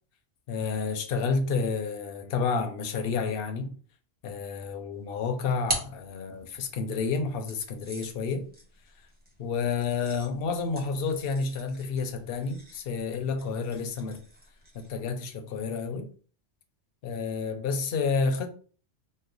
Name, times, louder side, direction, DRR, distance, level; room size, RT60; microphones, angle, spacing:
voice 1, 0.5-3.7 4.2-8.5 9.4-14.2 14.7-16.1 17.0-18.5, left 5 dB, 60° left, 0.7 m, -30 dB
sound 1, 5.0-6.8 7.5-15.1, right 1 dB, 10° right, 0.8 m, -42 dB
3.1 x 2.1 x 3.7 m
omnidirectional pair, 1.2 m